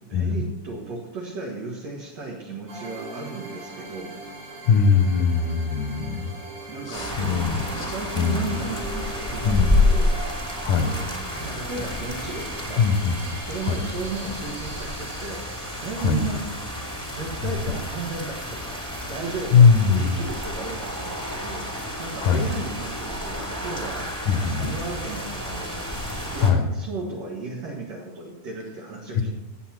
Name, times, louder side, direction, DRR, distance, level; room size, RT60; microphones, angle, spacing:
voice 1, 0.0-4.1 6.7-10.2 10.6-11.2 11.4-12.9 13.5-15.5 15.8-16.5 17.1-18.8 19.1-21.6 22.0-26.0 26.3-29.3, right 3 dB, 60° right, -2 dB, 2.5 m, -35 dB
sound 1, 2.7-21.1, right 2 dB, 90° right, 5.4 m, -41 dB
voice 2, 4.6-6.3 6.9-8.5 9.4-9.8 10.6-10.9 12.8-13.8 16.0-16.2 17.4-17.5 19.5-20.2 22.2-22.5 24.3-24.7 26.4-26.7, left 6 dB, 70° left, 6 dB, 2.2 m, -21 dB
sound 2, 6.9-26.5, left 1 dB, 5° right, 1.8 m, -29 dB
16.0 x 8.2 x 4.4 m, 1.0 s
omnidirectional pair, 3.9 m